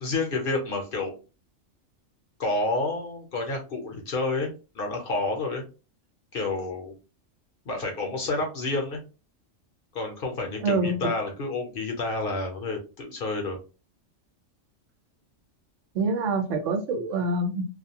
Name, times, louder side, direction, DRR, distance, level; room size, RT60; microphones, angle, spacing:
voice 1, 0.0-1.1 2.4-5.6 6.3-6.9 7.7-9.0 9.9-13.6, left 3 dB, 55° left, 0.8 m, -29 dB
voice 2, 10.6-11.1 15.9-17.6, right 2 dB, 80° right, 0.9 m, -26 dB
2.5 x 2.2 x 2.7 m
omnidirectional pair, 1.3 m